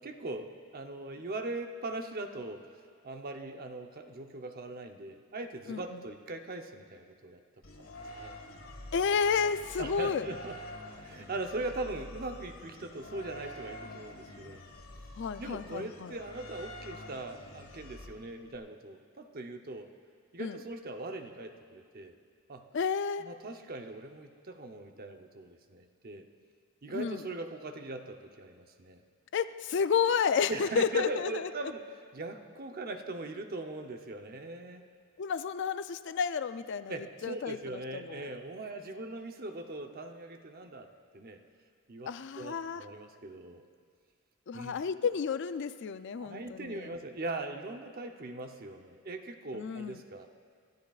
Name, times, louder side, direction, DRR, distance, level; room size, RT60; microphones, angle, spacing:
voice 1, 0.0-2.6 3.0-7.4 7.8-7.9 8.2-8.3 9.8-10.6 10.9-14.6 15.4-19.9 20.3-22.1 22.5-22.7 23.2-26.3 26.8-29.0 30.5-31.8 32.1-34.8 36.9-40.9 41.1-41.4 41.9-42.1 42.4-43.6 44.5-44.8 46.2-50.3, right 2 dB, 45° right, 5 dB, 0.8 m, -40 dB
voice 2, 5.7-6.0 8.9-10.3 15.2-16.1 20.4-20.6 22.7-23.3 26.9-27.3 29.3-31.5 35.2-38.3 42.1-42.9 44.5-47.0 49.5-50.0, left 6 dB, 55° left, 13 dB, 0.4 m, -31 dB
sound 1, 7.6-18.6, left 1 dB, 85° left, 1.5 m, -47 dB
26.0 x 13.5 x 2.4 m, 2.1 s
head